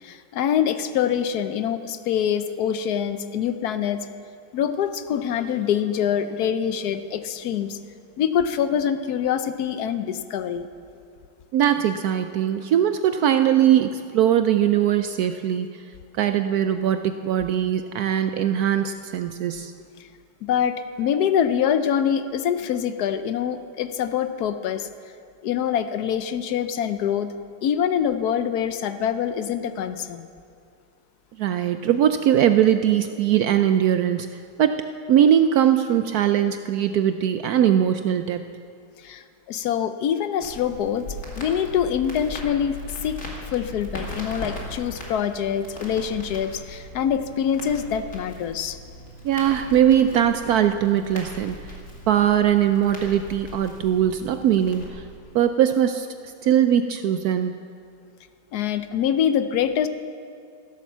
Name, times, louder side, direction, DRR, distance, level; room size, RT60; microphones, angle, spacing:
voice 1, 0.0-4.1 4.5-7.8 8.2-10.7 20.4-24.9 25.4-27.3 27.6-30.3 39.0-41.1 41.4-42.8 43.0-43.2 43.5-48.8 58.5-59.9, left 8 dB, 65° left, 10 dB, 1.0 m, -25 dB
voice 2, 11.5-15.8 16.2-19.7 31.4-34.3 34.6-38.4 49.2-51.6 52.1-55.0 55.3-56.1 56.4-57.6, right 10 dB, 75° right, 9 dB, 0.8 m, -20 dB
Crackle, 40.4-54.9, left 1 dB, 40° left, 2.7 m, -39 dB
14.5 x 11.5 x 7.2 m, 2.3 s
omnidirectional pair, 2.1 m